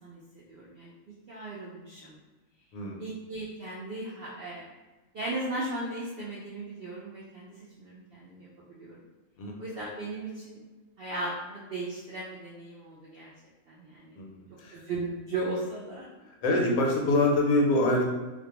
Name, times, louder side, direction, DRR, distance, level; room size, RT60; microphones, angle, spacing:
voice 1, 0.0-2.2 3.0-4.7 5.1-8.5 8.8-9.0 9.6-10.6 11.0-13.3 13.7-14.2 14.7-16.1 16.5-16.6, right 2 dB, 75° right, -5 dB, 0.5 m, -37 dB
voice 2, 2.7-3.0 9.4-9.6 14.2-14.8 16.4-18.0, left 2 dB, 75° left, 0 dB, 1.0 m, -25 dB
2.5 x 2.1 x 2.8 m, 1.2 s
omnidirectional pair, 1.5 m